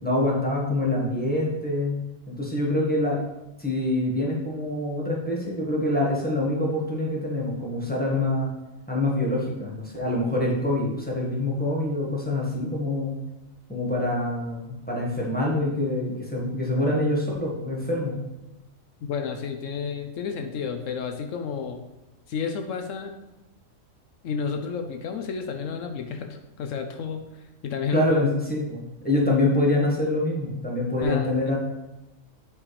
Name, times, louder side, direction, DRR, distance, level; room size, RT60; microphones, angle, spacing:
voice 1, 0.0-3.2 3.6-8.5 8.9-13.1 13.7-18.1 27.9-31.6, left 1 dB, 5° left, -4 dB, 1.4 m, -25 dB
voice 2, 19.1-21.8 22.3-23.2 24.2-28.1 31.0-31.3, left 6 dB, 75° left, 5 dB, 1.0 m, -31 dB
8.6 x 4.9 x 3.2 m, 0.98 s
omnidirectional pair, 1.4 m